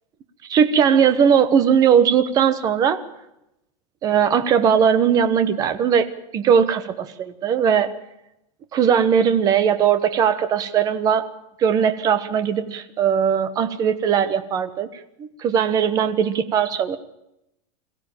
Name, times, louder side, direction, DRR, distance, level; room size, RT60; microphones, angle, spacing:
voice 1, 0.5-3.0 4.0-6.1 6.3-6.8 7.2-7.9 8.7-11.3 11.6-14.9 15.2-17.0, right 7 dB, 20° right, 1.1 m, -19 dB
22.5 x 15.5 x 8.9 m
supercardioid pair, 175°, 19 cm